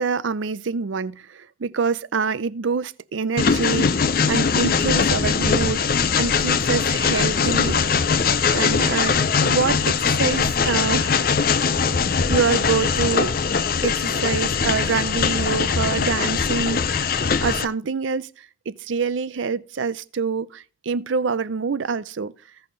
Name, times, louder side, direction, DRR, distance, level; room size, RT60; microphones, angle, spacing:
voice 1, 0.0-7.8 8.5-11.2 12.3-13.3 13.8-17.1 17.4-22.3, right 5 dB, 80° right, 0.5 m, -26 dB
Train, 3.4-17.6, left 5 dB, 50° left, 0.5 m, -21 dB
15.5 x 5.6 x 3.9 m
head